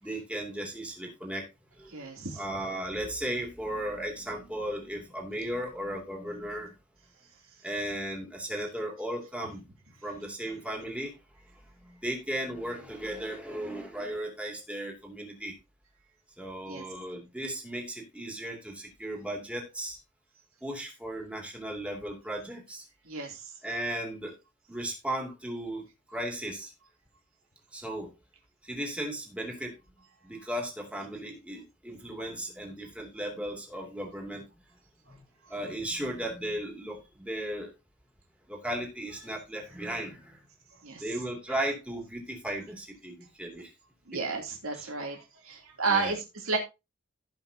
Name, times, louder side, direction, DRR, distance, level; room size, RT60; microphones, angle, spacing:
voice 1, 0.0-1.5 1.8-2.1 2.4-6.7 7.6-9.6 10.0-11.1 11.8-15.5 16.4-20.0 20.6-22.8 23.6-24.3 24.7-25.9 26.1-26.7 27.7-28.1 28.6-29.7 30.2-34.4 35.1-35.2 35.5-37.7 38.5-40.4 41.0-43.7 44.1-44.2 44.7-44.9 45.9-46.2, right 1 dB, 5° right, 0 dB, 2.8 m, -36 dB
voice 2, 1.9-2.4 16.6-16.8 23.0-23.5 40.8-41.0 44.1-46.6, right 4 dB, 85° right, 1 dB, 3.0 m, -32 dB
17.0 x 5.8 x 2.8 m, 0.25 s
head